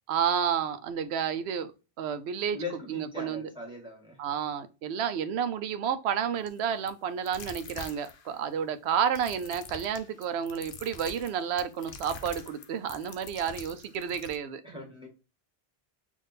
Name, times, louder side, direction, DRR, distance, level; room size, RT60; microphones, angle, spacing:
voice 1, 0.1-1.7 2.0-2.6 2.9-3.5 4.2-14.8, right 8 dB, 85° right, 0.8 m, -31 dB
voice 2, 2.5-4.2 14.6-15.1, left 3 dB, 5° right, 1.4 m, -40 dB
sound 1, 6.5-6.6 6.9-7.0 7.3-8.4 9.1-14.4, left 5 dB, 65° left, 0.7 m, -45 dB
3.6 x 2.6 x 3.9 m
omnidirectional pair, 1.1 m